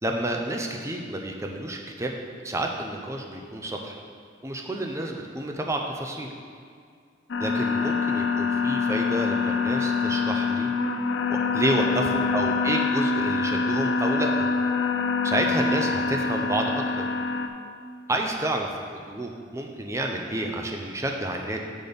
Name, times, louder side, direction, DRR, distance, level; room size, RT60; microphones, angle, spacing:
voice 1, 0.0-2.1 2.4-4.0 4.4-6.3 7.4-10.7 11.3-14.3 15.2-17.1 18.1-21.6, right 1 dB, 15° right, 2 dB, 0.6 m, -29 dB
sound 1, 7.3-17.5, left 4 dB, 75° left, 0.5 m, -25 dB
6.1 x 5.2 x 6.9 m, 2.2 s
head